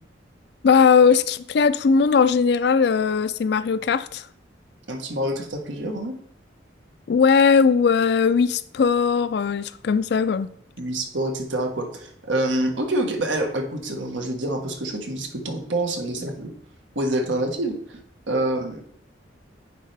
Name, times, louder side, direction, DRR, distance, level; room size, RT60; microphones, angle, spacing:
voice 1, 0.6-4.2 7.1-10.5, left 5 dB, 60° left, 0.4 m, -19 dB
voice 2, 4.9-6.2 10.8-16.5 16.9-18.0 18.3-18.8, right 1 dB, 90° right, 1.3 m, -26 dB
10.0 x 4.3 x 3.3 m
head